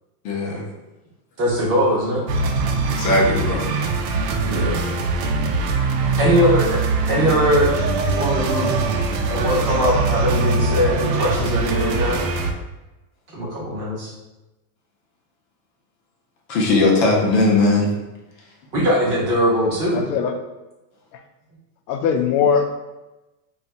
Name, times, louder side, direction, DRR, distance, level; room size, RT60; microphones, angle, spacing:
voice 1, 0.2-0.6 2.9-3.7 16.5-17.9, left 2 dB, 35° left, -2 dB, 0.5 m, -18 dB
voice 2, 1.4-2.2 4.4-4.8 6.2-6.8 7.1-7.7 8.0-8.7 9.3-12.2 13.3-14.1 18.7-20.0, equal, 25° right, -5 dB, 0.6 m, -20 dB
sound 1, 2.3-12.5, right 3 dB, 80° right, 0.6 m, -22 dB
voice 3, 19.9-20.3 21.1-21.2 21.9-22.7, left 7 dB, 75° left, 5 dB, 0.6 m, -20 dB
2.5 x 2.3 x 4.0 m, 1.0 s
supercardioid pair, 165°, 48 cm